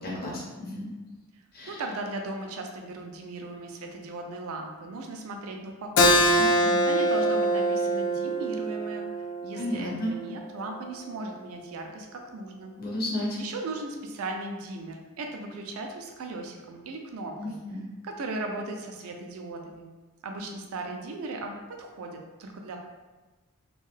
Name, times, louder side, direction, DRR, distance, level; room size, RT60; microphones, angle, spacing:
voice 1, 0.0-0.9 1.5-1.8 6.4-6.8 9.6-10.1 12.8-13.3 17.4-17.9, left 1 dB, 45° left, -5 dB, 0.9 m, -33 dB
voice 2, 1.7-9.1 9.4-12.8 13.4-17.6 18.0-19.9 20.2-22.8, right 2 dB, 75° right, 3 dB, 0.4 m, -37 dB
Keyboard (musical), 6.0-11.2, equal, 65° left, 0.3 m, -25 dB
2.6 x 2.2 x 3.2 m, 1.2 s
head